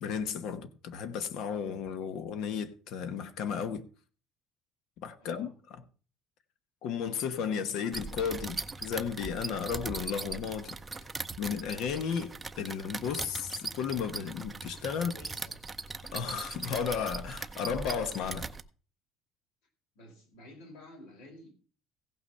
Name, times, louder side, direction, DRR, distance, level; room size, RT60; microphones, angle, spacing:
voice 1, 0.0-3.9 5.0-5.8 6.8-10.8 11.4-15.2 16.1-18.5, left 7 dB, 60° left, 1.1 m, -34 dB
voice 2, 5.2-5.5 15.1-15.6 19.9-21.5, left 1 dB, 75° left, 4.7 m, -51 dB
sound 1, 7.9-18.6, right 3 dB, 15° right, 0.6 m, -40 dB
16.0 x 5.8 x 5.5 m
cardioid pair, 155°, 0 cm